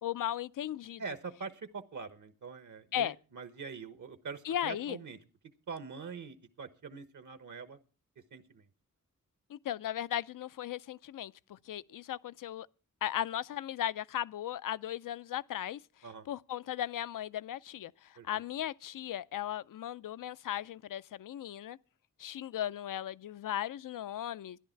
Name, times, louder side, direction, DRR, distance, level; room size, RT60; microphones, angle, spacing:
voice 1, 0.0-1.0 2.9-3.1 4.5-5.0 9.5-12.7 13.0-15.8 16.3-21.8 22.2-24.6, left 11 dB, 85° left, 0.5 m, -37 dB
voice 2, 1.0-5.2 5.7-7.8 8.3-8.7 16.0-16.3 18.2-18.3, right 5 dB, 70° right, 1.2 m, -44 dB
13.5 x 11.0 x 4.5 m
wide cardioid pair, 80°, 32 cm